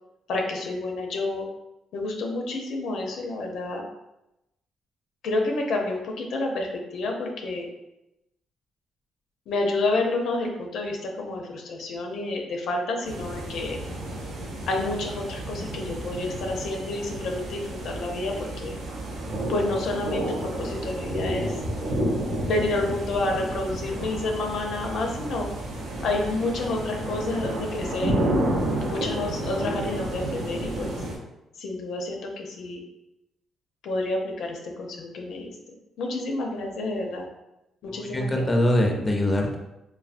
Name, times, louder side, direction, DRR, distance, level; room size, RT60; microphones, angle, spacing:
voice 1, 0.3-1.5 1.9-3.8 5.2-7.7 9.5-13.8 14.7-18.8 19.5-21.5 22.3-25.5 26.0-28.2 28.8-31.0 31.6-32.8 33.8-35.6 36.0-37.3 37.8-38.5, left 2 dB, 75° left, 1 dB, 0.5 m, -29 dB
sound 1, 13.0-31.1, right 1 dB, 75° right, 0.6 m, -31 dB
voice 2, 37.9-39.6, left 1 dB, 20° left, 2 dB, 0.4 m, -24 dB
3.3 x 2.1 x 2.4 m, 0.91 s
cardioid pair, 90°, 0 cm